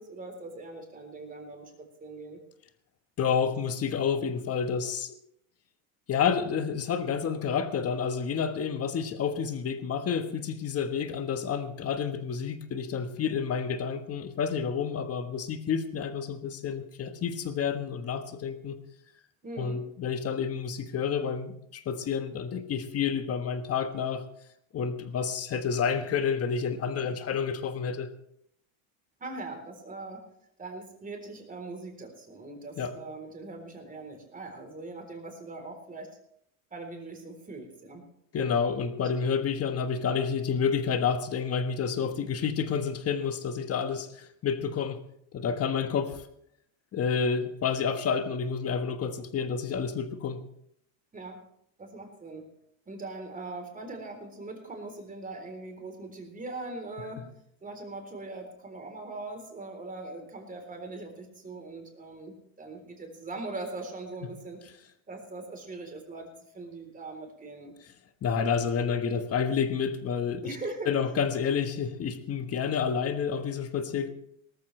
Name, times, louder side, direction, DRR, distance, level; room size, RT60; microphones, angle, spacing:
voice 1, 0.0-2.4 19.4-19.8 29.2-30.2 30.6-36.2 36.7-38.1 51.1-51.4 51.8-52.4 52.9-57.2 57.6-64.6 65.1-67.7 70.4-70.9, right 2 dB, 20° right, 3.8 m, -41 dB
voice 2, 3.2-5.2 6.1-18.8 19.6-24.2 24.7-28.1 32.8-32.9 38.3-45.0 45.3-46.2 46.9-50.4 68.2-70.6 70.9-74.1, left 6 dB, 35° left, 1.4 m, -29 dB
18.5 x 14.0 x 3.3 m
supercardioid pair, 120°, 43 cm